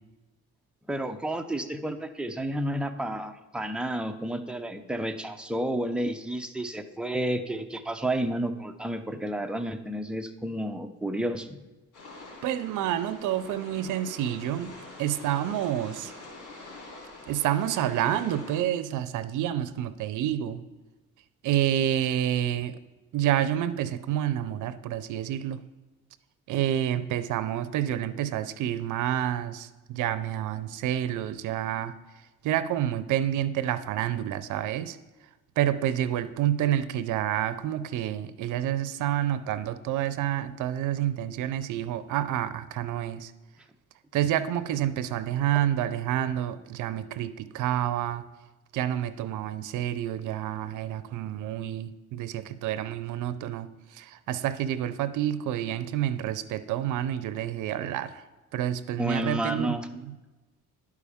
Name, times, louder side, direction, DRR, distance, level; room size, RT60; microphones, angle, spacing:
voice 1, 0.9-11.6 59.0-59.9, right 1 dB, 5° right, 6 dB, 0.6 m, -31 dB
sound 1, 11.9-18.6, left 2 dB, 80° left, 2.8 m, -45 dB
voice 2, 12.4-16.1 17.3-20.6 21.4-22.8 23.1-25.6 26.5-31.9 32.4-35.0 35.6-43.3 44.1-48.2 48.7-58.2 58.5-60.1, right 11 dB, 80° right, 13 dB, 0.5 m, -28 dB
11.0 x 4.7 x 3.5 m, 1.1 s
cardioid pair, 90°, 30 cm